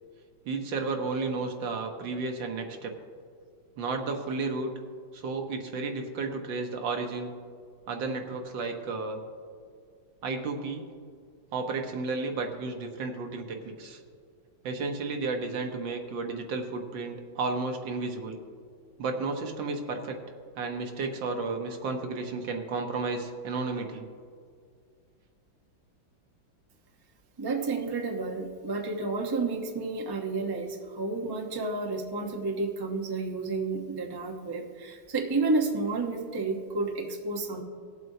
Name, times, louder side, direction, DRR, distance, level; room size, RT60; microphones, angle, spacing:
voice 1, 0.5-2.9 3.8-4.7 5.1-7.3 7.9-9.2 10.2-10.8 11.5-14.0 14.6-18.4 19.0-20.2 20.5-24.0, right 3 dB, 70° right, 4 dB, 1.7 m, -32 dB
voice 2, 27.4-37.6, right 3 dB, 35° right, 1 dB, 0.3 m, -31 dB
19.5 x 7.7 x 2.7 m, 2.1 s
omnidirectional pair, 2.2 m